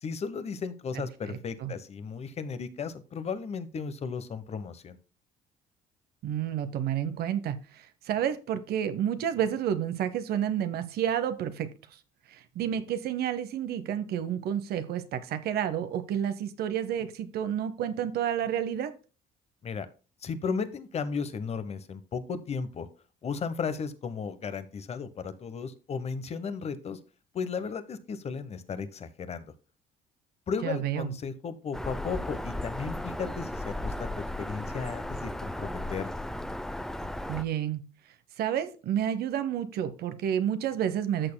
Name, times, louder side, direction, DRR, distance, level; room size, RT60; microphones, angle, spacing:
voice 1, 0.0-5.0 19.6-19.9 20.2-22.9 23.2-27.0 27.3-29.5 30.5-34.1 34.4-36.1, left 5 dB, 40° left, 13 dB, 1.0 m, -35 dB
voice 2, 1.3-1.7 6.2-11.7 12.3-18.9 30.6-31.1 37.3-37.8 38.4-41.3, right 9 dB, 70° right, 11 dB, 0.8 m, -30 dB
Bird vocalization bird call bird song, 31.7-37.4, left 1 dB, 5° left, 0.5 m, -35 dB
14.0 x 6.7 x 2.2 m, 0.35 s
cardioid pair, 110°, 17 cm